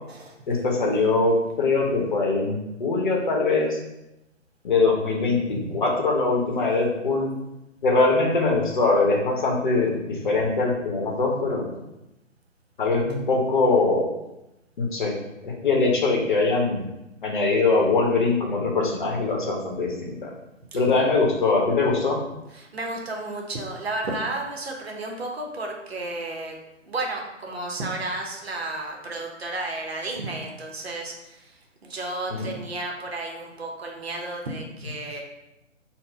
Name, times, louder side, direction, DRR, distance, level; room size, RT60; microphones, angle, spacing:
voice 1, 0.5-3.8 4.6-7.3 7.8-11.7 12.8-14.1 14.8-15.2 15.4-16.8 17.2-20.3 20.7-22.2 32.3-32.5, left 3 dB, 40° left, -1 dB, 0.9 m, -22 dB
voice 2, 5.5-5.8 20.7-20.8 22.5-26.6 26.8-35.2, right 2 dB, 55° right, 1 dB, 0.9 m, -32 dB
4.0 x 2.1 x 4.4 m, 0.92 s
figure-of-eight pair, 135°, 37 cm